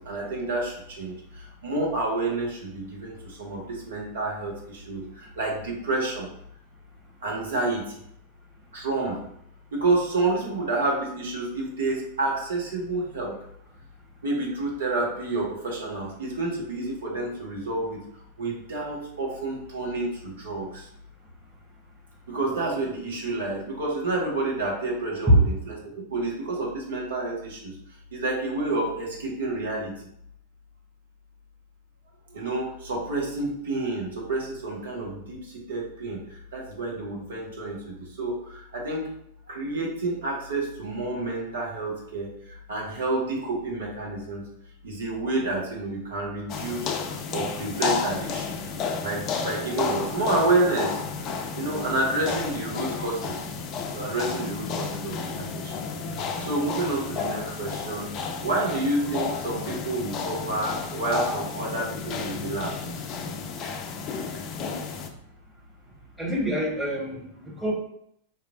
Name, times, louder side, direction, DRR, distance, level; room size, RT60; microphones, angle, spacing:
voice 1, 0.1-1.1 1.6-5.0 5.4-6.3 7.2-7.9 8.7-9.2 9.7-13.4 14.2-18.0 18.4-20.8 22.3-27.7 28.1-29.9 32.3-35.4 35.7-36.2 36.5-38.4 38.7-39.0 39.5-42.3 42.7-44.4 44.8-46.9 47.3-48.6 49.0-51.0 51.6-53.3 53.9-55.7 56.4-58.1 58.4-62.7, right 2 dB, 60° right, -2 dB, 1.3 m, -29 dB
sound 1, 46.5-65.1, left 5 dB, 35° left, 0.4 m, -32 dB
voice 2, 66.2-67.7, equal, 5° right, -3 dB, 1.5 m, -24 dB
4.1 x 3.2 x 2.5 m, 0.70 s
figure-of-eight pair, 90°, 0 cm